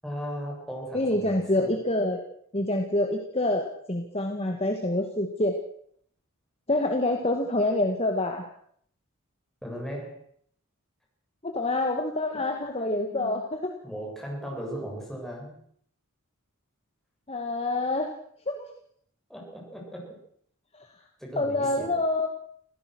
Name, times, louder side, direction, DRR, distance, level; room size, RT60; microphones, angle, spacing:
voice 1, 0.0-1.8 9.6-10.2 12.3-12.4 13.1-13.4 13.8-15.6 19.3-20.2 21.2-22.0, equal, ahead, -2 dB, 7.5 m, -37 dB
voice 2, 0.9-2.2 2.5-5.6 6.7-8.5 11.4-13.7 17.3-18.1 18.5-18.7 21.4-22.3, left 2 dB, 25° left, 3 dB, 2.0 m, -26 dB
27.0 x 16.5 x 6.3 m, 0.64 s
head